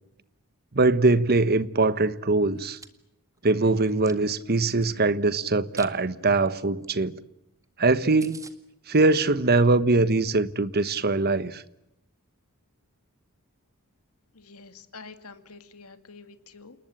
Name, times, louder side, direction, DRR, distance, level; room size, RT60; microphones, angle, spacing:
voice 1, 0.7-2.8 3.4-7.2 7.8-8.4 8.9-11.6, right 3 dB, 45° right, 1.2 m, -22 dB
Chewing mastication, 2.5-2.9 3.4-4.9 5.4-5.9 6.3-6.5 6.8-6.9 7.2-7.3 7.6-7.7 7.9-8.0 8.2-8.5, right 4 dB, 15° right, 1.8 m, -46 dB
voice 2, 14.4-16.8, left 4 dB, 80° left, 2.3 m, -47 dB
29.0 x 20.0 x 8.9 m
head